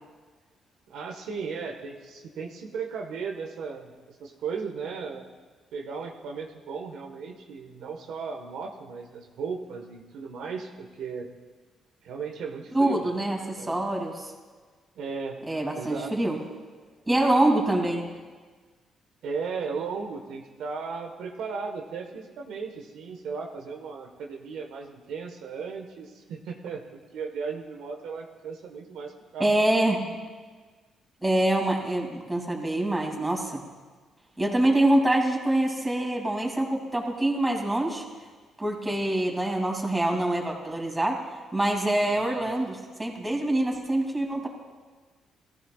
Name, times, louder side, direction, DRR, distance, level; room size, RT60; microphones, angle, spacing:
voice 1, 0.9-5.3 5.7-11.3 12.0-13.2 13.6-13.8 14.9-15.4 15.7-16.1 19.2-26.8 27.1-29.5 38.9-39.0 42.0-42.5, right 5 dB, 85° right, 2 dB, 1.4 m, -36 dB
voice 2, 12.7-14.3 15.5-16.4 17.1-18.1 29.4-30.0 31.2-33.6 34.4-38.0 38.6-41.2 41.5-44.5, right 1 dB, 15° right, 0 dB, 2.8 m, -25 dB
19.5 x 14.5 x 2.4 m, 1.4 s
cardioid pair, 90°, 0 cm